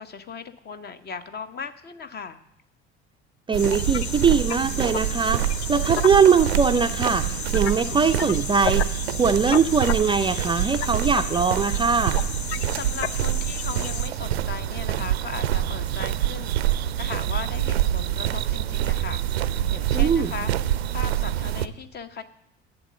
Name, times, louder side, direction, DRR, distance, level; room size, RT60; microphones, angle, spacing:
voice 1, 0.0-2.4 12.8-19.4 19.7-20.5 20.9-22.2, left 5 dB, 30° left, 10 dB, 0.9 m, -37 dB
voice 2, 3.5-5.4 5.7-8.8 9.1-12.2 19.9-20.3, right 5 dB, 15° right, 7 dB, 0.5 m, -21 dB
sound 1, 3.5-21.7, right 12 dB, 75° right, 0.5 m, -26 dB
sound 2, 3.6-14.1, left 9 dB, 80° left, 0.5 m, -33 dB
11.0 x 8.0 x 7.0 m, 0.79 s
figure-of-eight pair, 60°, 32 cm